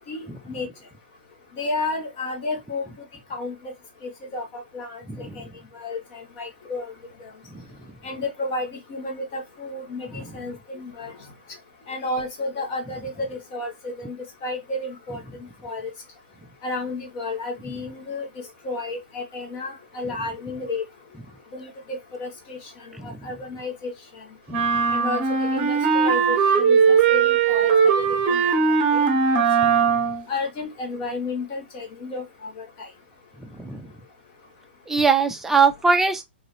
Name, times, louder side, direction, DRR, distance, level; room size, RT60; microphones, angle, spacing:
voice 1, 0.1-0.7 1.6-2.9 3.3-3.7 4.0-5.4 5.7-6.9 8.0-11.1 11.9-14.2 14.4-15.2 15.6-15.9 16.6-18.3 18.6-20.8 21.5-22.6 23.0-23.9 24.9-29.4 30.3-32.2 32.6-32.7, left 2 dB, 40° left, 1.5 m, -32 dB
voice 2, 5.1-5.5 7.5-7.6 10.1-10.3 23.0-23.3 24.5-24.7 29.6-29.7 33.4-33.9 34.9-36.2, right 5 dB, 5° right, 0.5 m, -23 dB
sound 1, 24.5-30.3, right 6 dB, 30° right, 0.9 m, -19 dB
3.8 x 2.7 x 3.2 m
hypercardioid pair, 130°, 6 cm